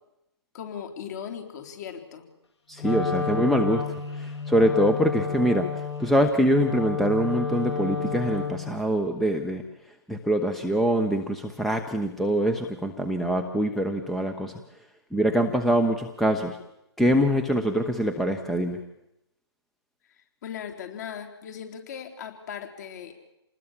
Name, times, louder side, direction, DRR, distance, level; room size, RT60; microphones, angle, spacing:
voice 1, 0.5-2.3 20.1-23.1, left 8 dB, 40° left, 5 dB, 3.9 m, -38 dB
voice 2, 2.7-3.8 4.1-5.7 6.0-9.6 10.1-14.5 15.1-16.6 17.0-18.8, equal, ahead, 6 dB, 0.9 m, -24 dB
Wind instrument woodwind instrument, 2.8-8.8, left 5 dB, 75° left, 5.8 m, -31 dB
28.0 x 20.0 x 7.3 m, 0.88 s
hypercardioid pair, 150°, 14 cm